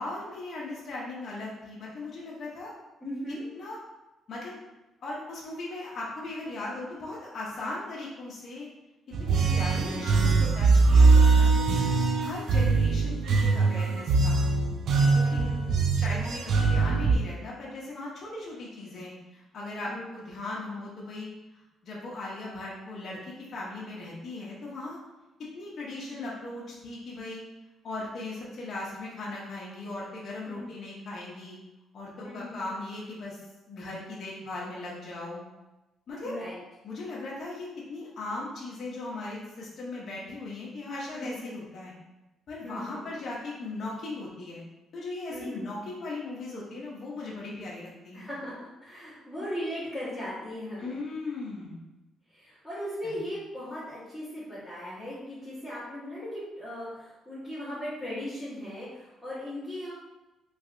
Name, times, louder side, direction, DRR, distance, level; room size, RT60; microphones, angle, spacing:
voice 1, 0.0-2.7 3.3-3.8 4.3-4.5 5.0-8.7 9.2-11.8 12.2-14.4 15.1-15.4 15.9-21.3 21.8-25.0 25.5-27.4 27.8-31.6 31.9-33.4 33.7-35.4 36.1-36.3 36.8-41.9 42.5-44.6 44.9-48.3 50.8-51.8 53.0-53.1, left 2 dB, 45° left, -5 dB, 0.6 m, -38 dB
voice 2, 3.0-3.5 15.2-15.8 19.9-20.1 26.1-26.3 30.5-30.8 32.2-32.7 36.2-36.6 41.1-41.6 42.6-43.1 45.3-45.7 48.1-51.0 52.3-59.9, left 1 dB, ahead, -15 dB, 1.2 m, -38 dB
sound 1, 9.1-17.2, right 4 dB, 60° right, 0.3 m, -22 dB
3.1 x 2.8 x 2.5 m, 1.0 s
cardioid pair, 145°, 0 cm